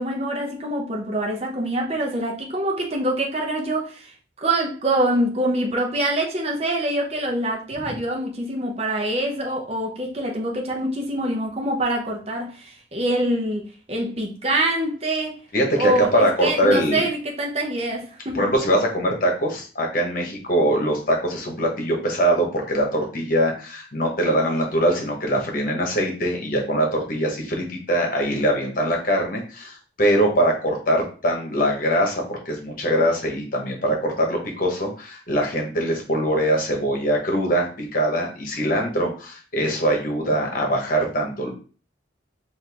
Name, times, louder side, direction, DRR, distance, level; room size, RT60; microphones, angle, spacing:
voice 1, 0.0-4.1 4.4-15.4 15.8-18.5, right 1 dB, 35° right, 0.8 m, -25 dB
voice 2, 15.5-17.1 18.3-41.5, right 1 dB, 45° left, 1.1 m, -22 dB
4.3 x 2.6 x 3.4 m
head